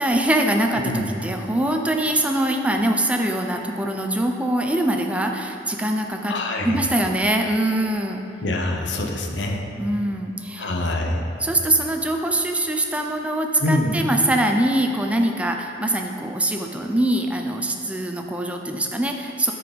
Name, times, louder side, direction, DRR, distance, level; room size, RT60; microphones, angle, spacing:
voice 1, 0.0-6.4 6.6-8.2 9.8-10.7 11.4-19.5, right 1 dB, 5° right, 3 dB, 0.5 m, -23 dB
voice 2, 0.7-1.1 6.3-6.8 8.4-9.7 10.6-11.3 13.6-14.0, left 1 dB, 90° left, 2 dB, 1.0 m, -25 dB
12.5 x 4.8 x 5.2 m, 2.6 s
head